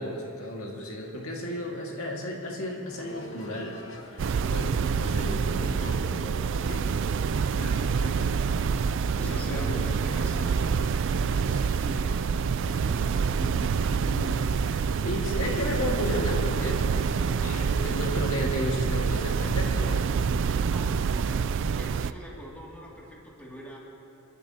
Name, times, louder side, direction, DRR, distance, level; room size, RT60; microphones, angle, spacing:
voice 1, 0.0-3.8 4.1-6.9 7.5-8.3 9.2-9.9 14.6-16.9 17.4-20.1, left 1 dB, 80° left, -1 dB, 1.9 m, -34 dB
sound 1, 2.9-18.3, left 2 dB, 65° left, 1.1 m, -45 dB
sound 2, 4.2-22.1, right 6 dB, 60° right, 0.3 m, -27 dB
voice 2, 9.1-14.3 20.6-23.8, equal, 5° left, -4 dB, 2.3 m, -44 dB
28.5 x 12.0 x 2.8 m, 2.8 s
head